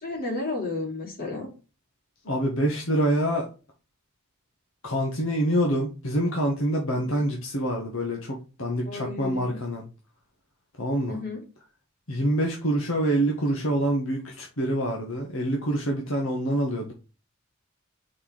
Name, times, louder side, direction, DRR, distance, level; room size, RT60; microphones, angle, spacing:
voice 1, 0.0-1.5 6.9-7.3 8.8-9.6 11.1-11.4, left 3 dB, 45° left, 3.8 m, -33 dB
voice 2, 2.3-3.4 4.8-9.8 10.8-11.2 12.1-16.9, right 1 dB, 70° left, 1.5 m, -26 dB
5.5 x 4.6 x 5.9 m
head